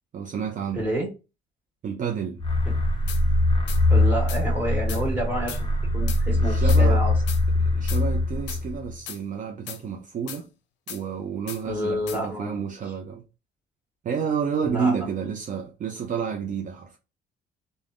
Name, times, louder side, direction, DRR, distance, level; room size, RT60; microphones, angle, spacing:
voice 1, 0.1-0.9 1.8-2.4 6.0-7.0 7.6-10.5 10.9-13.2 14.0-17.0, right 6 dB, 45° right, 0.5 m, -30 dB
voice 2, 0.7-1.1 3.9-7.1 11.6-12.6 14.6-15.1, equal, 10° right, 1.5 m, -29 dB
sound 1, 2.4-8.9, left 2 dB, 25° left, 0.7 m, -22 dB
sound 2, 3.1-3.2 3.7-3.8 4.3-4.4 4.9-5.0 5.5-5.6 6.1-6.2 6.7-6.8 7.3-7.4 7.9-8.0 8.5-8.6 9.1-9.2 9.7-9.8 10.3-10.4 10.9-11.0 11.5-11.6 12.1-12.2, left 9 dB, 70° left, 0.5 m, -37 dB
3.4 x 2.1 x 2.4 m
supercardioid pair, 75°, 19 cm